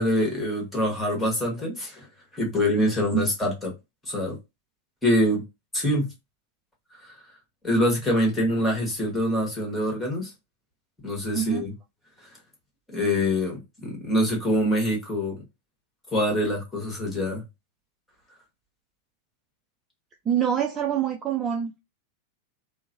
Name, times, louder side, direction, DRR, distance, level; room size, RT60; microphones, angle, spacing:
voice 1, 0.0-2.1 2.3-3.7 4.1-4.4 5.0-5.4 5.7-6.1 7.0-7.1 7.6-10.3 11.0-11.7 12.9-15.4 16.1-17.4, equal, 10° left, 1.4 m, -25 dB
voice 2, 11.3-11.6 20.3-21.7, right 9 dB, 20° right, 0.4 m, -25 dB
3.0 x 2.1 x 2.7 m
figure-of-eight pair, 90°, 0 cm